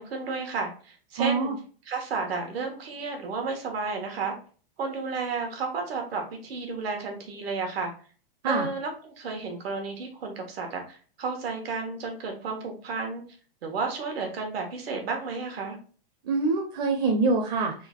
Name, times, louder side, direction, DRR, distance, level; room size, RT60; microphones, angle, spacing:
voice 1, 0.0-1.5 1.9-4.3 4.8-7.9 8.5-13.2 13.6-15.8, right 4 dB, 85° right, 3 dB, 1.4 m, -32 dB
voice 2, 1.2-1.6 8.4-8.7 16.2-17.7, right 3 dB, 40° right, 2 dB, 0.7 m, -25 dB
3.8 x 2.4 x 3.6 m, 0.40 s
supercardioid pair, 165°, 30 cm